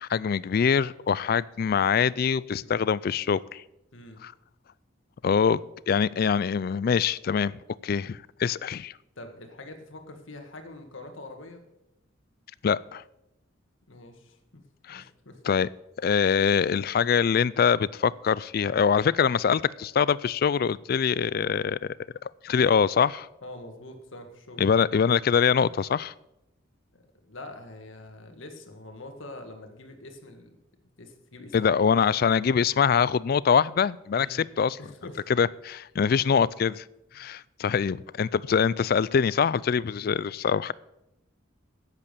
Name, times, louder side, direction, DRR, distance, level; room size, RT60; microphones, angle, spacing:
voice 1, 0.0-3.6 4.2-4.3 5.2-5.6 5.9-7.6 7.8-8.9 12.6-13.0 14.9-15.0 15.4-15.7 16.0-21.8 22.4-23.3 24.6-26.1 31.5-34.8 35.4-36.7 37.1-40.7, left 6 dB, 50° left, 21 dB, 0.3 m, -24 dB
voice 2, 9.2-11.6 13.9-14.6 14.9-15.4 23.4-24.6 26.9-27.0 27.3-30.6 31.0-32.1 34.2-34.5 34.8-35.2 36.0-36.1 39.9-40.2, left 2 dB, 80° left, 5 dB, 1.8 m, -44 dB
10.5 x 8.3 x 6.8 m, 0.87 s
head